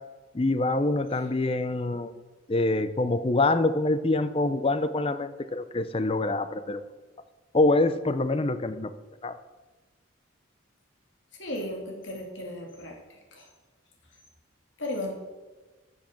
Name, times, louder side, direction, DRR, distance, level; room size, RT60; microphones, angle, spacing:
voice 1, 0.3-2.1 2.5-6.8 7.5-8.9 9.2-9.4, left 2 dB, 30° left, 12 dB, 0.6 m, -25 dB
voice 2, 11.4-13.5 14.8-15.1, left 1 dB, 65° left, 1 dB, 2.6 m, -35 dB
12.5 x 7.1 x 6.0 m, 1.3 s
head